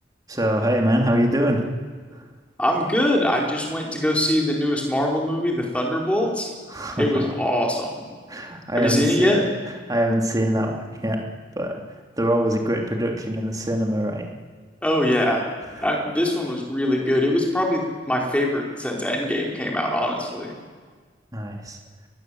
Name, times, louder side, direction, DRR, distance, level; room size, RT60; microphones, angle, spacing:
voice 1, 0.3-1.6 2.1-2.3 6.7-7.3 8.3-9.4 9.7-11.2 11.5-14.3 15.7-15.9 21.3-21.8, equal, 20° right, 1 dB, 3.1 m, -24 dB
voice 2, 2.6-6.5 7.0-8.0 8.7-9.4 14.8-15.5 15.8-20.5, left 1 dB, 5° left, -1 dB, 4.6 m, -23 dB
28.5 x 20.5 x 7.9 m, 1.5 s
head